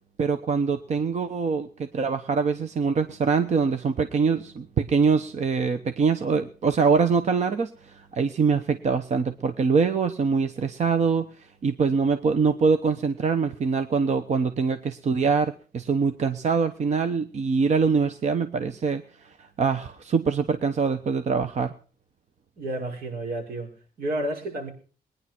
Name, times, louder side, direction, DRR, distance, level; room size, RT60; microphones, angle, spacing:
voice 1, 0.2-21.7, right 5 dB, 50° right, 9 dB, 1.0 m, -24 dB
voice 2, 22.6-24.7, right 1 dB, 85° right, 2 dB, 5.5 m, -31 dB
21.0 x 10.0 x 6.0 m, 0.40 s
wide cardioid pair, 145°, 15 cm